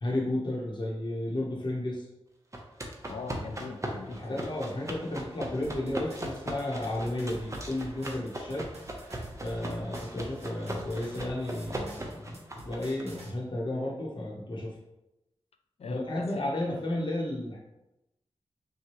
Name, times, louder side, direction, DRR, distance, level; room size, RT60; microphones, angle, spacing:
voice 1, 0.0-2.1 4.1-8.7 9.4-14.7 15.9-17.6, left 1 dB, 45° left, -3 dB, 0.9 m, -33 dB
sound 1, 2.5-13.0, right 1 dB, 30° right, 0.8 m, -39 dB
voice 2, 3.1-4.5 15.8-16.8, left 4 dB, 70° left, 7 dB, 0.5 m, -41 dB
sound 2, 5.6-13.3, right 1 dB, 75° right, 1.1 m, -49 dB
6.1 x 2.2 x 3.0 m, 0.92 s
cardioid pair, 60°, 11 cm